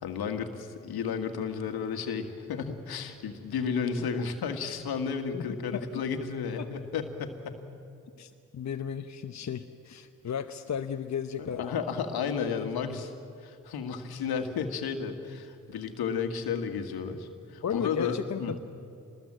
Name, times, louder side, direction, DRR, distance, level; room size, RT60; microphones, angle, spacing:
voice 1, 0.0-7.6 11.4-13.1 13.4-18.5, left 6 dB, 75° left, 7 dB, 1.9 m, -33 dB
voice 2, 5.3-5.9 6.6-6.7 8.2-11.8 12.2-13.0 17.6-18.6, left 7 dB, 45° left, 7 dB, 1.0 m, -35 dB
26.0 x 20.5 x 7.6 m, 2.5 s
hypercardioid pair, 40°, 38 cm